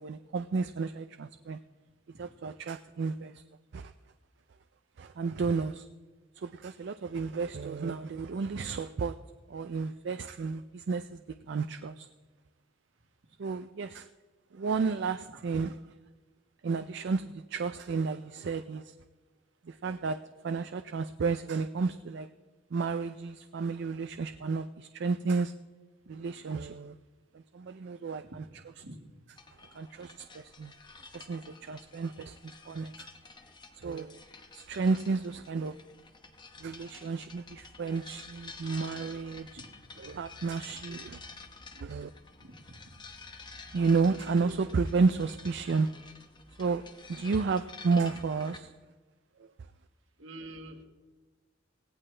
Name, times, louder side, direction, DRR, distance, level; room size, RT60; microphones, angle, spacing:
voice 1, 0.0-1.6 2.2-3.4 3.7-3.9 5.0-5.9 6.3-9.2 9.5-11.2 11.5-12.1 13.4-14.1 14.5-15.8 16.6-18.9 19.6-20.2 20.4-22.3 22.7-25.5 26.1-27.0 27.3-28.4 28.8-28.9 29.7-30.7 31.1-33.1 33.7-34.2 34.5-35.8 36.6-39.6 40.0-41.2 41.8-42.1 43.7-45.9 46.6-46.8 47.1-48.7 49.4-49.5, right 4 dB, 60° right, 10 dB, 0.4 m, -32 dB
sound 1, 29.4-48.6, left 4 dB, 25° left, 1.0 m, -50 dB
voice 2, 42.4-42.8 50.2-50.8, right 1 dB, 75° right, 4 dB, 1.6 m, -46 dB
17.0 x 17.0 x 3.3 m, 1.3 s
head